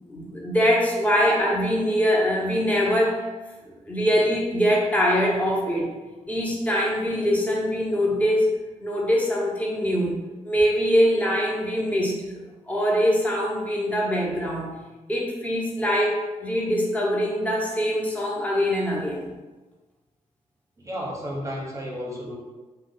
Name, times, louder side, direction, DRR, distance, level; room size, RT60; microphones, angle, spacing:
voice 1, 0.1-3.2 3.6-5.9 6.3-8.5 8.8-10.2 10.4-14.8 15.1-19.3, equal, 10° left, -4 dB, 0.9 m, -23 dB
voice 2, 20.8-22.4, equal, 25° right, -1 dB, 0.8 m, -32 dB
2.8 x 2.1 x 3.8 m, 1.2 s
cardioid pair, 65°, 13 cm